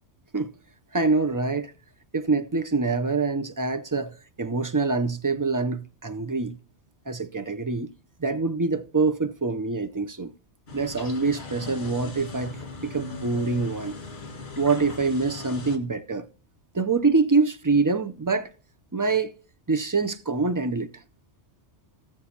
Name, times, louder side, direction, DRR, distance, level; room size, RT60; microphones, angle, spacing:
voice 1, 0.9-1.7 2.1-6.5 7.1-7.9 8.2-10.3 10.7-12.6 12.8-13.9 14.6-16.3 16.7-18.5 18.9-19.3 19.7-20.9, right 4 dB, 30° right, 0.4 m, -25 dB
sound 1, 10.7-15.8, left 3 dB, 60° left, 2.0 m, -39 dB
18.5 x 7.4 x 2.8 m
omnidirectional pair, 1.2 m